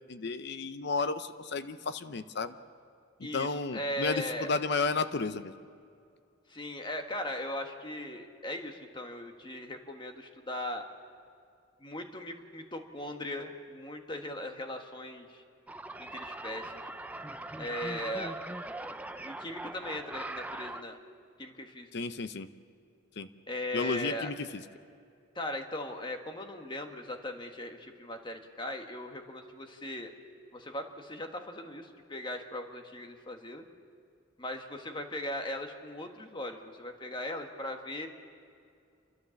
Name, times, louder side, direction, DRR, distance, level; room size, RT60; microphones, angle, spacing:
voice 1, 0.1-2.5 3.2-5.5 21.9-22.5 23.2-23.3 23.7-24.6, left 4 dB, 55° left, 12 dB, 0.7 m, -32 dB
voice 2, 3.2-4.5 6.5-10.8 11.8-15.4 16.0-16.8 17.6-18.4 19.2-21.0 21.4-21.9 23.5-24.3 25.3-30.1 30.5-33.6 34.4-38.1, left 1 dB, 25° left, 5 dB, 1.4 m, -38 dB
sound 1, 15.7-20.8, right 2 dB, 5° right, 0.4 m, -41 dB
29.0 x 13.0 x 7.1 m, 2.4 s
head